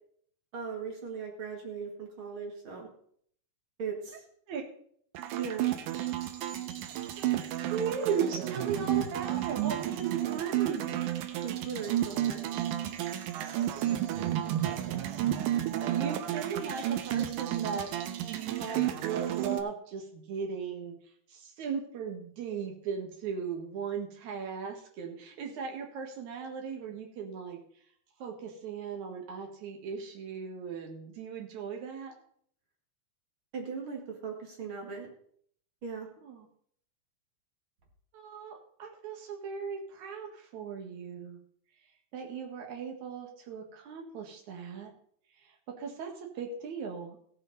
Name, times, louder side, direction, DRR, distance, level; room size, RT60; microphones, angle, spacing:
voice 1, 0.5-2.9 3.8-4.2 5.4-5.7 11.4-12.4 33.5-35.1 35.8-36.1, right 5 dB, 45° right, 0 dB, 2.5 m, -38 dB
sound 1, 5.1-19.6, right 12 dB, 85° right, 2.3 m, -32 dB
voice 2, 7.2-11.0 13.4-13.7 14.6-15.2 15.8-17.9 18.2-21.0 21.3-27.6 28.2-32.1 36.2-36.5 38.1-41.4 42.1-44.9 45.4-47.2, right 6 dB, 65° right, 1 dB, 2.9 m, -37 dB
16.5 x 7.6 x 4.1 m, 0.63 s
omnidirectional pair, 3.6 m